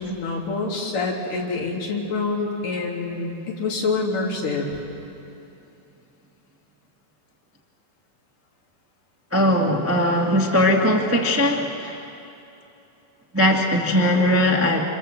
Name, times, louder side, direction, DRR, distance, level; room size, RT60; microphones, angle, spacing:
voice 1, 0.0-4.7, left 3 dB, 65° left, -2 dB, 4.6 m, -26 dB
voice 2, 9.3-12.0 13.3-14.8, left 1 dB, 15° right, 0 dB, 0.4 m, -20 dB
28.0 x 26.0 x 7.7 m, 2.8 s
omnidirectional pair, 4.1 m